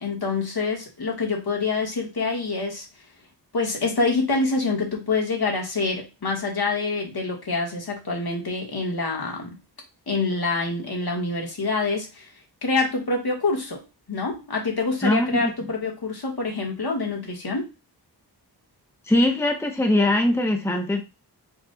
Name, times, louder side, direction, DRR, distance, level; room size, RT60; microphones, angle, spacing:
voice 1, 0.0-2.9 3.5-9.5 10.1-12.3 12.6-17.7, left 3 dB, 70° left, 0 dB, 1.5 m, -26 dB
voice 2, 15.0-15.5 19.1-21.0, left 1 dB, 5° left, 3 dB, 0.7 m, -21 dB
4.7 x 2.4 x 3.8 m, 0.27 s
wide cardioid pair, 100°, 40 cm